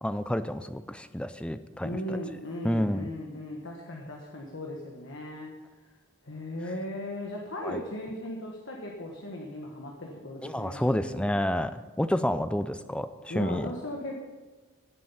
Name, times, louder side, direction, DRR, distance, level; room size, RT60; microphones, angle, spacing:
voice 1, 0.0-2.2 2.6-3.1 7.6-7.8 10.4-13.7, left 1 dB, 5° left, 11 dB, 0.5 m, -29 dB
voice 2, 1.8-5.5 6.2-11.3 13.3-14.2, left 1 dB, 65° left, 0 dB, 1.5 m, -37 dB
16.5 x 7.7 x 5.7 m, 1.3 s
head